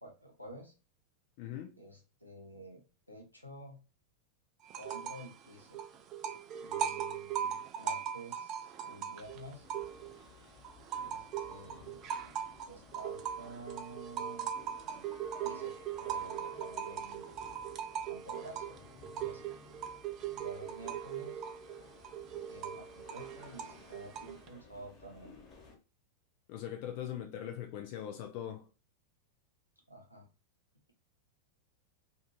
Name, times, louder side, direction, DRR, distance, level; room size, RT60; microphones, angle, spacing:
voice 1, 0.0-0.7 1.8-2.8 3.1-3.8 4.8-5.8 6.6-9.7 11.0-12.4 12.7-14.5 14.8-15.1 15.4-15.8 16.0-17.3 18.1-18.8 19.1-19.5 20.3-21.5 22.5-25.3 29.9-30.3, right 1 dB, 90° left, 0.7 m, -50 dB
voice 2, 1.4-1.8 26.5-28.7, left 10 dB, 45° left, 0.4 m, -41 dB
sound 1, 4.7-5.3 5.6-10.2 10.6-24.5, right 9 dB, 35° right, 0.3 m, -39 dB
sound 2, 9.2-25.8, left 4 dB, 30° left, 0.9 m, -57 dB
2.7 x 2.4 x 2.2 m
figure-of-eight pair, 90°, 0 cm